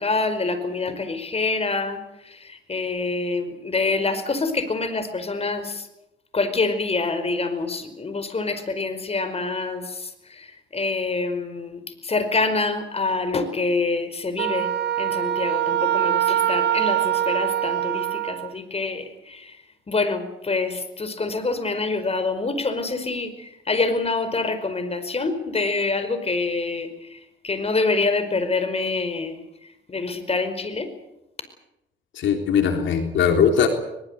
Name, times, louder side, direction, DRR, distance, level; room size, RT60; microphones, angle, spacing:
voice 1, 0.0-5.9 6.3-14.7 15.0-19.6 19.9-29.4 29.9-30.9, left 3 dB, 30° left, 10 dB, 5.0 m, -26 dB
Wind instrument woodwind instrument, 14.4-18.5, right 11 dB, 60° right, 1.4 m, -23 dB
voice 2, 32.2-33.7, left 7 dB, 75° left, 5 dB, 3.7 m, -20 dB
22.0 x 22.0 x 8.2 m, 0.86 s
cardioid pair, 90°, 20 cm